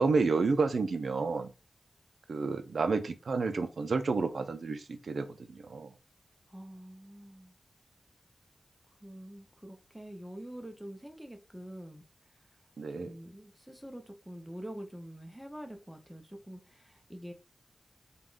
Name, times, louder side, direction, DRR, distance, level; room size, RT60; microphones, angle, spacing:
voice 1, 0.0-1.5 2.3-5.9 12.8-13.2, right 4 dB, 80° right, 9 dB, 0.4 m, -30 dB
voice 2, 6.5-7.5 9.0-12.0 12.9-17.3, equal, 5° right, 4 dB, 0.6 m, -46 dB
3.4 x 2.2 x 2.4 m, 0.30 s
wide cardioid pair, 75°, 0 cm